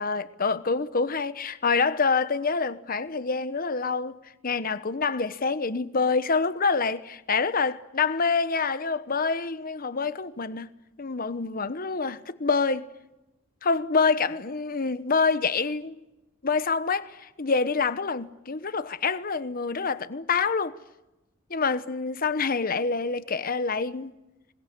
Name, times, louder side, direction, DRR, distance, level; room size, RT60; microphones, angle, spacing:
voice 1, 0.0-10.7 11.0-12.9 13.6-16.0 16.4-20.7 21.5-24.1, left 4 dB, 45° left, 1.0 m, -26 dB
26.5 x 21.0 x 9.9 m
head